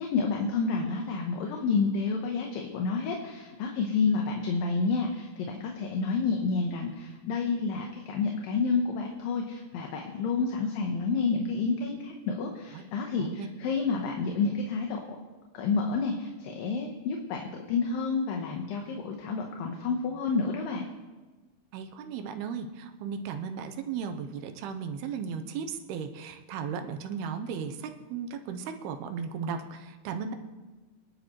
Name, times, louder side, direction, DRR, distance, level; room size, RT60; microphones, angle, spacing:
voice 1, 0.0-15.0 15.5-20.8, left 4 dB, 70° left, 1 dB, 2.6 m, -29 dB
voice 2, 21.7-30.3, right 6 dB, 85° right, 6 dB, 2.8 m, -36 dB
23.5 x 12.0 x 3.1 m, 1.2 s
omnidirectional pair, 4.5 m